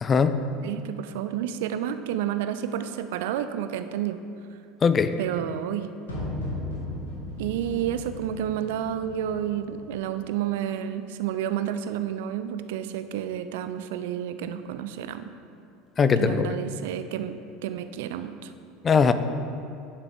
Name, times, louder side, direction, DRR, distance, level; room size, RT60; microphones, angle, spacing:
voice 1, 0.0-0.3 4.8-5.1 16.0-16.5 18.8-19.1, left 6 dB, 30° left, 11 dB, 0.4 m, -20 dB
voice 2, 0.6-4.2 5.2-5.9 7.4-15.3 16.2-18.5, right 10 dB, 60° right, 11 dB, 0.4 m, -30 dB
sound 1, 6.1-10.1, left 1 dB, 75° left, 1.8 m, -36 dB
10.5 x 5.8 x 3.5 m, 2.5 s
figure-of-eight pair, 70°, 0 cm